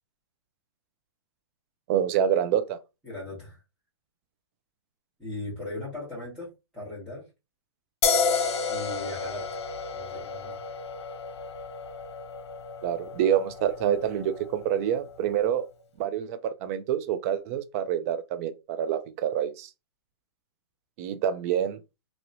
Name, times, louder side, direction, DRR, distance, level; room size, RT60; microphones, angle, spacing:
voice 1, 1.9-2.8 12.8-15.7 16.0-19.7 21.0-21.8, right 9 dB, 30° right, 0.4 m, -27 dB
voice 2, 3.0-3.6 5.2-7.2 8.7-9.5 9.9-10.6, left 2 dB, 5° right, 1.4 m, -38 dB
sound 1, 8.0-15.3, left 5 dB, 75° left, 0.8 m, -31 dB
3.0 x 2.9 x 2.6 m
hypercardioid pair, 150°, 14 cm